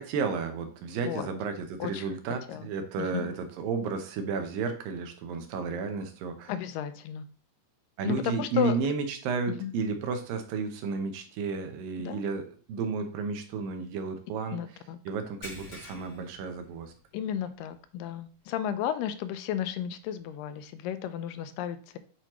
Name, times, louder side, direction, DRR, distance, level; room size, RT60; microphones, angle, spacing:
voice 1, 0.0-6.5 8.0-14.6 15.1-16.9, right 5 dB, 90° right, 7 dB, 2.6 m, -32 dB
voice 2, 6.5-7.2 8.0-8.8 9.5-9.7 12.0-12.2 14.5-15.0 17.1-22.0, left 10 dB, 85° left, 11 dB, 2.2 m, -33 dB
sound 1, 15.4-17.3 17.6-17.9 18.3-18.4 20.1-20.2, left 1 dB, 35° left, 3.2 m, -46 dB
8.1 x 4.5 x 3.0 m, 0.40 s
omnidirectional pair, 3.9 m